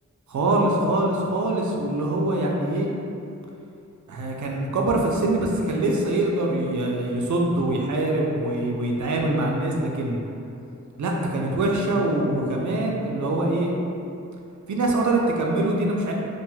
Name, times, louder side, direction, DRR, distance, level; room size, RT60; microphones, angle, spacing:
voice 1, 0.3-2.9 4.1-10.2 11.0-13.7 14.7-16.1, right 2 dB, 70° right, -1 dB, 0.4 m, -24 dB
2.4 x 2.3 x 3.1 m, 2.6 s
wide cardioid pair, 70°, 30 cm